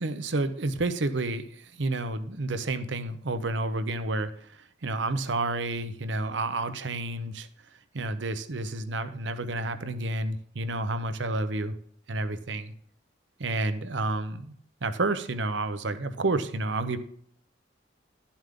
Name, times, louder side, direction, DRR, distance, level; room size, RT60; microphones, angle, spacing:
voice 1, 0.0-4.5 4.8-7.5 7.9-11.8 12.1-12.7 13.4-14.5 14.8-17.0, right 2 dB, 75° right, 11 dB, 0.8 m, -30 dB
12.5 x 7.2 x 3.7 m, 0.65 s
head